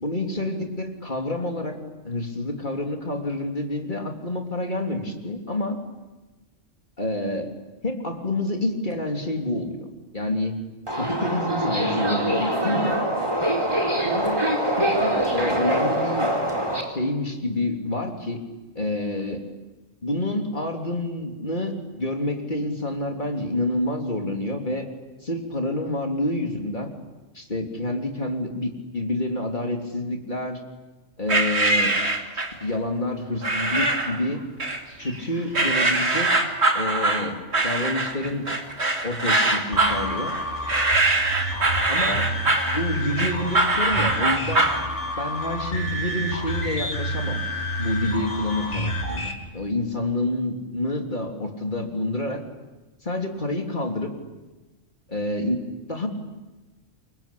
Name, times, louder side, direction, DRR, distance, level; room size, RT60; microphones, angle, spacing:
voice 1, 0.0-1.8 2.0-5.8 7.0-7.5 7.8-9.9 10.1-10.6 11.0-13.3 14.0-16.3 16.9-18.4 18.7-19.4 20.0-24.9 25.2-26.9 27.3-30.6 31.2-32.0 32.3-34.4 35.0-36.3 36.7-38.5 39.0-40.4 41.9-42.3 42.7-44.7 45.2-47.4 47.8-52.4 53.0-54.1 55.1-56.1, left 1 dB, 40° left, 2 dB, 3.5 m, -28 dB
Subway metro underground, 10.9-16.8, right 1 dB, 20° right, 4.4 m, -24 dB
sound 1, 31.3-32.6 33.4-34.2 34.6-35.2 35.5-44.8, right 2 dB, 55° right, 3.0 m, -23 dB
sound 2, 39.7-49.3, equal, 65° left, 4.1 m, -29 dB
28.0 x 24.5 x 8.6 m, 1.2 s
omnidirectional pair, 1.3 m